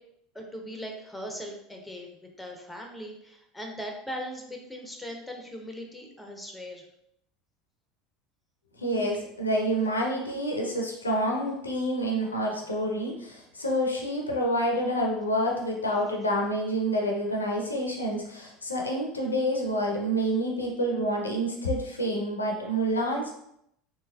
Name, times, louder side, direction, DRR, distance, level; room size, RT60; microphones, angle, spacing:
voice 1, 0.3-6.9, equal, 5° left, 2 dB, 0.6 m, -39 dB
voice 2, 8.8-23.3, equal, 85° left, 0 dB, 0.5 m, -28 dB
3.1 x 2.9 x 2.2 m, 0.76 s
figure-of-eight pair, 75°, 0 cm